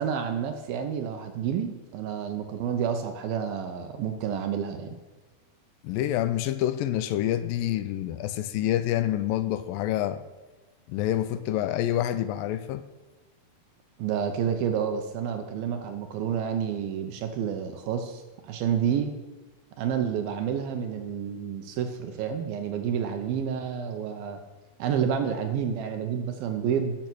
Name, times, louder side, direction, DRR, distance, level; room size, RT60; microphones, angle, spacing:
voice 1, 0.0-5.0 11.9-12.1 14.0-19.1 19.8-24.4 24.8-26.9, right 8 dB, 75° right, 2.6 m, -29 dB
voice 2, 5.8-10.2 10.9-12.8, left 12 dB, 80° left, 2.1 m, -27 dB
15.0 x 6.9 x 6.1 m
omnidirectional pair, 4.4 m